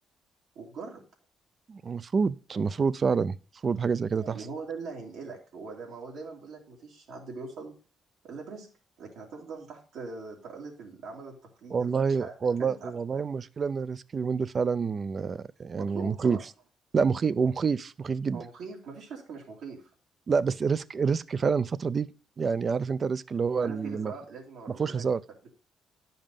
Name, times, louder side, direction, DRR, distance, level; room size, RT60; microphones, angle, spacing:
voice 1, 0.6-1.0 4.1-7.7 8.2-8.7 9.0-11.9 12.2-12.3 12.6-12.9 15.8-16.4 18.3-19.8 23.6-25.0, right 4 dB, 85° right, 2.3 m, -41 dB
voice 2, 1.7-3.4 3.6-4.4 11.7-16.4 16.9-18.4 20.3-22.1 22.4-24.1 24.7-25.2, right 5 dB, 40° right, 0.5 m, -27 dB
10.0 x 5.5 x 5.2 m
cardioid pair, 90°, 0 cm